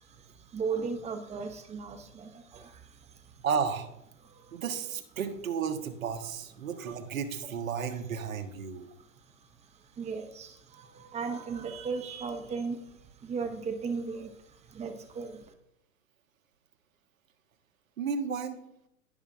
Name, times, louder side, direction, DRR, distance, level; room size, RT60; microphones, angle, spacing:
voice 1, 0.0-3.4 4.2-4.6 6.6-6.7 8.6-15.5, right 5 dB, 15° right, 7 dB, 0.8 m, -37 dB
voice 2, 3.4-3.9 4.5-8.9 18.0-18.6, right 6 dB, 70° right, 6 dB, 1.3 m, -33 dB
16.0 x 5.4 x 2.5 m, 0.81 s
hypercardioid pair, 110°, 41 cm